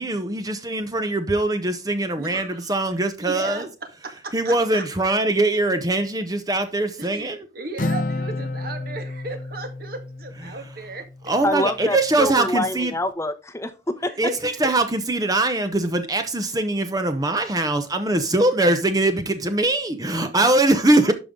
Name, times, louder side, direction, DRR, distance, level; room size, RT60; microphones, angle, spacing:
voice 1, 0.0-3.7 4.3-7.5 10.4-10.6 11.3-12.9 14.2-21.1, right 2 dB, 20° right, 0.8 m, -22 dB
voice 2, 2.2-2.7 3.2-3.7 4.0-4.8 7.0-11.1 14.0-14.7, right 3 dB, 55° right, 1.9 m, -35 dB
Acoustic guitar, 7.8-11.4, left 2 dB, 45° left, 0.7 m, -30 dB
voice 3, 11.4-14.1, left 1 dB, 15° left, 0.9 m, -26 dB
11.0 x 5.4 x 3.7 m
head